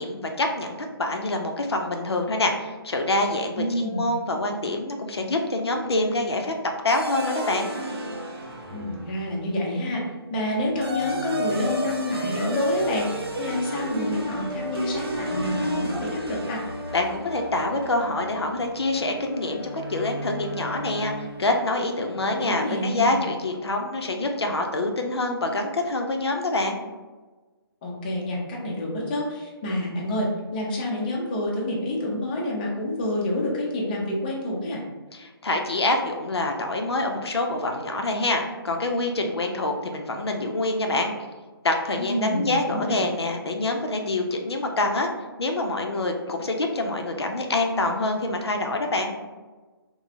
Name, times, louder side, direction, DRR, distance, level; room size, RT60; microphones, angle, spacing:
voice 1, 0.0-6.5 6.8-7.7 16.9-26.8 35.1-41.1 41.6-45.1 45.4-49.1, left 2 dB, 80° left, 3 dB, 0.5 m, -26 dB
voice 2, 3.6-4.1 8.7-10.0 10.3-16.6 22.2-23.2 27.8-34.8 42.0-43.0, left 1 dB, 20° left, -2 dB, 0.4 m, -28 dB
sound 1, 6.9-9.4 10.5-21.6, equal, 70° right, 0.6 m, -32 dB
3.1 x 2.0 x 2.4 m, 1.3 s
figure-of-eight pair, 145°, 13 cm